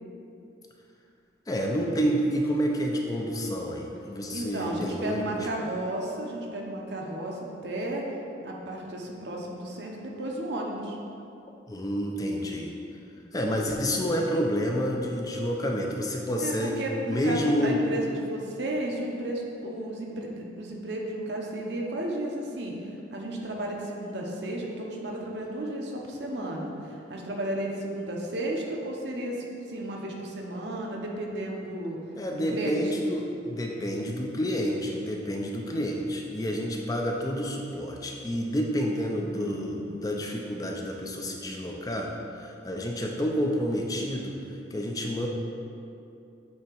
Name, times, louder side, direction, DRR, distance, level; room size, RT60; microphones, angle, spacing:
voice 1, 1.5-5.5 11.7-12.7 13.3-17.8 32.2-44.4 44.7-45.3, equal, 20° left, 0 dB, 0.5 m, -29 dB
voice 2, 4.3-8.1 8.4-11.0 16.4-22.8 23.1-32.0 32.3-32.9 39.2-40.0, right 1 dB, 65° right, -1 dB, 0.8 m, -33 dB
8.4 x 2.9 x 4.5 m, 2.7 s
head